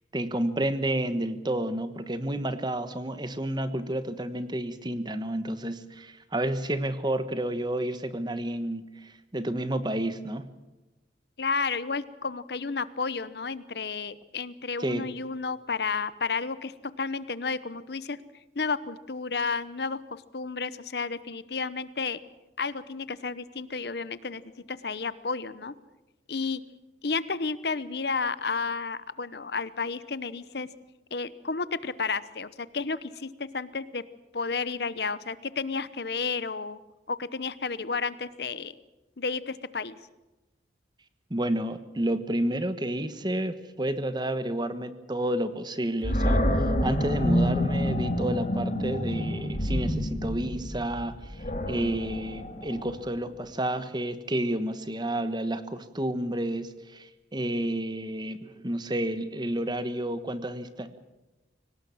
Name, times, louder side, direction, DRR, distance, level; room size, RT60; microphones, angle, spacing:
voice 1, 0.1-10.5 14.8-15.1 41.3-61.0, right 1 dB, 25° right, 11 dB, 1.3 m, -30 dB
voice 2, 11.4-16.7 17.0-18.2 18.5-22.2 22.6-24.4 24.7-25.7 26.3-26.6 27.0-30.7 31.1-34.0 34.3-36.8 37.1-38.7 39.2-40.0, left 4 dB, 60° left, 16 dB, 0.9 m, -32 dB
Animal, 46.0-53.2, equal, 40° left, 2.8 m, -28 dB
23.5 x 18.5 x 7.3 m, 1.0 s
head